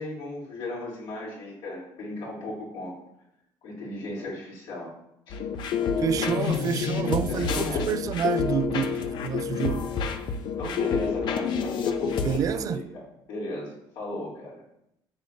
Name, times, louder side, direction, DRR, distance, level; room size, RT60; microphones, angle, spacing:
voice 1, 0.0-3.0 3.6-4.9 5.3-5.4 7.3-7.9 10.6-14.6, left 1 dB, 80° left, 3.7 m, -36 dB
sound 1, 5.3-12.4, left 6 dB, 65° left, 0.7 m, -28 dB
voice 2, 6.0-9.9 12.2-12.8, right 9 dB, 45° right, 0.3 m, -28 dB
10.5 x 7.2 x 2.8 m
cardioid pair, 135°, 9 cm